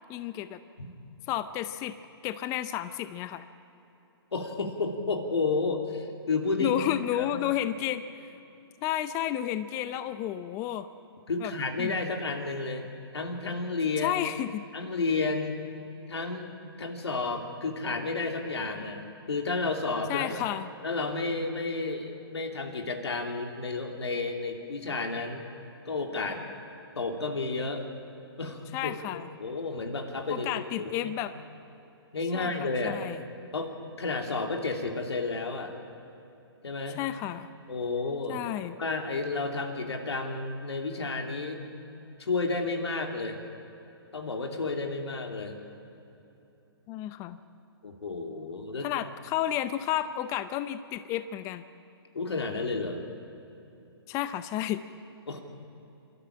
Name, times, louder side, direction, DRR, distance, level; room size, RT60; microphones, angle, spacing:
voice 1, 0.1-0.6 1.3-2.0 2.2-3.4 6.6-8.0 8.8-10.9 11.4-11.5 11.8-11.9 14.0-14.6 20.1-20.7 28.7-29.3 30.3-31.3 32.3-33.2 36.9-37.5 38.3-38.7 46.9-47.4 48.8-51.6 54.1-54.8, left 12 dB, 20° left, 12 dB, 0.6 m, -31 dB
voice 2, 4.3-6.8 7.2-7.4 11.3-12.9 13.1-14.1 14.7-15.6 16.1-16.5 16.8-19.0 19.3-20.4 20.8-25.4 25.8-26.4 26.9-27.9 28.4-30.5 30.8-31.1 32.1-33.0 33.5-35.7 36.6-37.0 37.7-38.5 38.8-41.8 42.2-43.4 44.1-45.6 47.8-48.9 52.1-53.0 55.3-55.4, left 3 dB, 90° left, 3 dB, 3.1 m, -31 dB
28.0 x 13.0 x 8.8 m, 2.9 s
hypercardioid pair, 145°, 14 cm